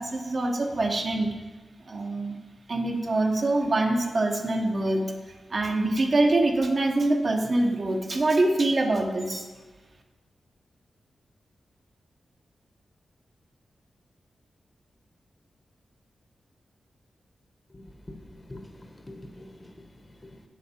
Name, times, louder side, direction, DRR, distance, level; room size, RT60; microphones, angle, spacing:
voice 1, 0.0-1.4 1.9-2.4 2.7-5.1 5.5-9.5, right 2 dB, 50° right, 2 dB, 1.0 m, -24 dB
voice 2, 17.7-19.7 20.2-20.4, left 1 dB, 25° left, 5 dB, 1.0 m, -45 dB
8.3 x 7.2 x 4.4 m, 1.3 s
wide cardioid pair, 90°, 0 cm